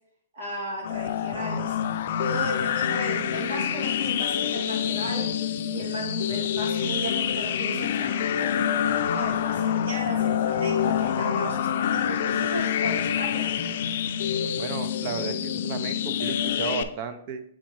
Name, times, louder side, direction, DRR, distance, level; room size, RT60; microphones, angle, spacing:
voice 1, 0.3-1.8 2.2-5.3 5.7-8.5 9.1-13.5, right 1 dB, 75° right, -3 dB, 2.4 m, -35 dB
sound 1, 0.8-16.8, left 9 dB, 60° left, 0.4 m, -26 dB
voice 2, 14.6-17.4, right 7 dB, 45° right, 10 dB, 0.6 m, -34 dB
7.4 x 5.0 x 3.1 m, 0.70 s
hypercardioid pair, 140°, 0 cm